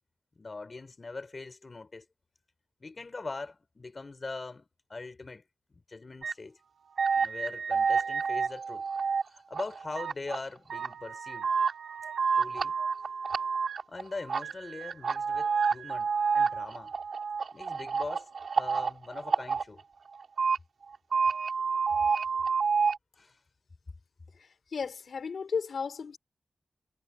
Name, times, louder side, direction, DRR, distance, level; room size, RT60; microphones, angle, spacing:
voice 1, 0.4-2.1 2.8-5.4 5.7-6.6 7.2-11.5 12.3-12.8 13.9-16.9 17.5-18.3 18.5-19.8 23.2-23.4, left 3 dB, 35° left, 4.6 m, -42 dB
sound 1, 6.2-6.3 7.0-9.2 9.5-10.4 10.7-14.0 14.3-19.6 20.2-20.6 20.9-23.0, right 5 dB, 75° right, 3.0 m, -29 dB
voice 2, 24.3-26.2, left 5 dB, 75° left, 4.2 m, -35 dB
wide cardioid pair, 160°, 0 cm